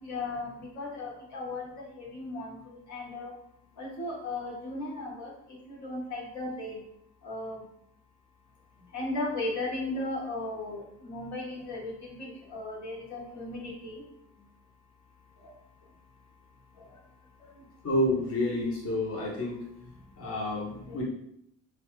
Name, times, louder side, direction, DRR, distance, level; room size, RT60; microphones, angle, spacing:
voice 1, 0.0-2.6 2.9-3.3 3.8-5.3 5.7-6.8 7.2-7.6 8.9-14.0 20.8-21.0, left 2 dB, 70° left, -3 dB, 1.1 m, -36 dB
voice 2, 17.8-19.6 20.2-21.0, left 1 dB, 50° left, -4 dB, 1.0 m, -29 dB
2.9 x 2.3 x 3.0 m, 0.73 s
cardioid pair, 90°, 30 cm